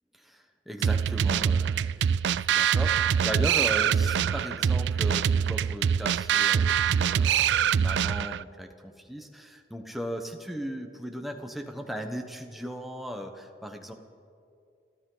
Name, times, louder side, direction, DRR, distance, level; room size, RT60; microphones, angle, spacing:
voice 1, 0.2-13.9, equal, ahead, 3 dB, 1.0 m, -37 dB
sound 1, 0.8-8.4, right 8 dB, 80° right, 0.3 m, -24 dB
29.5 x 12.5 x 3.9 m, 2.4 s
head